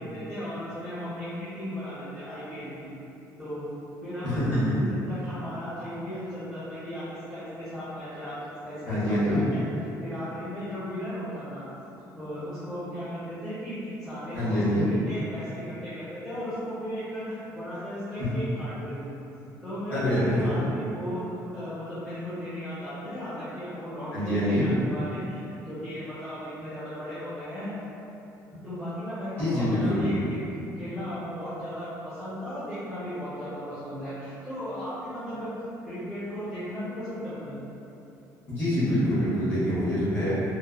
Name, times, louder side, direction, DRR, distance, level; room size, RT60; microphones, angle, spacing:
voice 1, 0.0-2.9 3.4-3.7 4.0-4.4 4.7-9.6 10.0-11.6 12.1-19.1 19.6-27.7 28.6-35.5 35.8-37.6, equal, 5° left, -16 dB, 0.7 m, -36 dB
voice 2, 4.2-4.7 8.9-9.4 14.3-14.9 19.9-20.3 24.1-24.7 29.4-30.2 38.5-40.4, equal, 25° left, -13 dB, 1.2 m, -25 dB
3.1 x 2.0 x 2.3 m, 2.8 s
cardioid pair, 170°, 7 cm